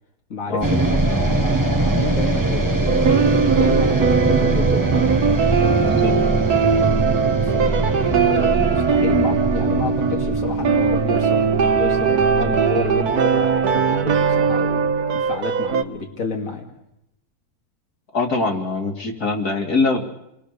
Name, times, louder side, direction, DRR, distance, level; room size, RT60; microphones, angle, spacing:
voice 1, 0.3-5.0 5.6-6.0 7.4-16.6, left 4 dB, 60° left, 0 dB, 2.9 m, -31 dB
sound 1, 0.6-14.9, right 2 dB, 15° right, 1.4 m, -23 dB
sound 2, 2.9-15.8, right 6 dB, 90° right, 1.8 m, -19 dB
voice 2, 5.8-6.2 18.1-20.1, left 3 dB, 85° left, 1 dB, 3.2 m, -23 dB
28.5 x 21.5 x 6.8 m, 0.83 s
omnidirectional pair, 1.6 m